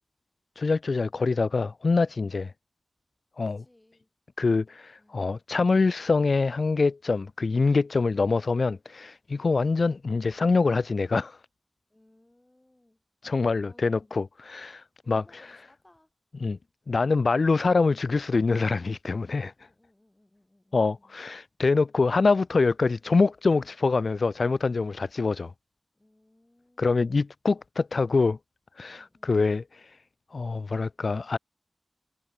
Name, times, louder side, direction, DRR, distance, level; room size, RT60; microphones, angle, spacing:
voice 1, 0.6-2.5 3.4-3.6 4.4-11.4 13.2-15.6 16.4-16.6 16.9-19.5 20.7-25.5 26.8-28.4 28.8-29.9 30.3-31.4, left 4 dB, 80° left, 0.9 m, -25 dB
voice 2, 3.4-4.1 5.0-5.2 9.0-9.1 11.9-13.0 13.6-14.2 15.0-16.1 19.6-21.2 25.9-27.0 28.9-29.3, left 1 dB, 25° left, 7.9 m, -62 dB
wide cardioid pair, 60°, 0 cm